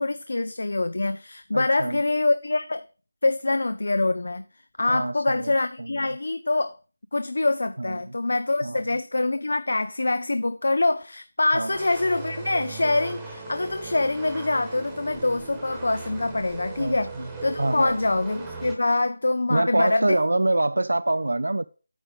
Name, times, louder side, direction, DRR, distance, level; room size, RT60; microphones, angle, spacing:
voice 1, 0.0-2.8 3.2-4.4 4.8-6.7 7.1-17.1 17.4-20.2, left 2 dB, 70° left, 0.5 m, -25 dB
voice 2, 1.5-2.0 4.9-5.5 5.8-6.1 7.8-8.0 8.6-8.8 11.5-11.7 16.8-17.3 17.6-18.0 19.5-21.7, right 2 dB, 85° right, 0.3 m, -25 dB
sound 1, 11.7-18.7, right 3 dB, 5° right, 1.1 m, -37 dB
8.9 x 4.9 x 5.1 m
figure-of-eight pair, 170°, 0 cm